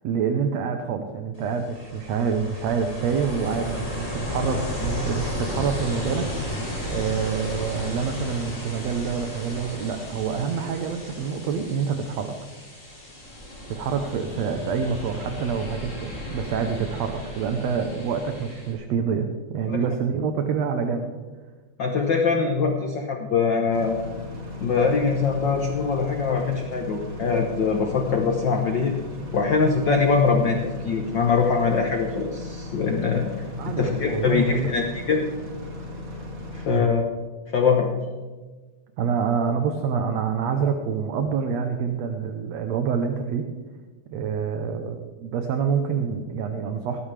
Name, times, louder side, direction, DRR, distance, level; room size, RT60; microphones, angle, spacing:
voice 1, 0.0-12.3 13.7-21.1 33.6-34.8 36.7-36.9 39.0-43.5 44.1-47.0, right 6 dB, 70° right, 6 dB, 1.9 m, -27 dB
Ocean, 1.3-18.7, left 1 dB, 15° left, 3.0 m, -34 dB
voice 2, 21.8-24.0 24.6-28.9 29.3-33.2 33.7-35.2 36.5-37.0 37.5-37.9, left 5 dB, 75° left, 3 dB, 1.0 m, -23 dB
sound 1, 23.7-36.8, left 1 dB, 40° right, 2.9 m, -37 dB
18.0 x 13.0 x 3.3 m, 1.3 s
omnidirectional pair, 3.6 m